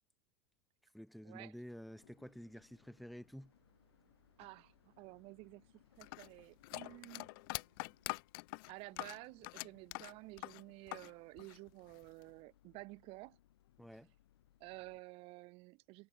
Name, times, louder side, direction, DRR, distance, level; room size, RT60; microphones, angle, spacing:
voice 1, 0.9-3.5 13.8-14.1, equal, ahead, 0.7 m, -51 dB
sound 1, 1.8-15.0, left 13 dB, 90° left, 1.3 m, -70 dB
sound 2, 1.9-8.2, right 15 dB, 80° right, 2.6 m, -78 dB
voice 2, 4.4-7.3 8.7-13.4 14.6-16.1, right 23 dB, 50° right, 0.7 m, -52 dB
sound 3, 6.0-11.1 11.4-12.2, left 26 dB, 65° left, 0.4 m, -44 dB
supercardioid pair, 120°, 13 cm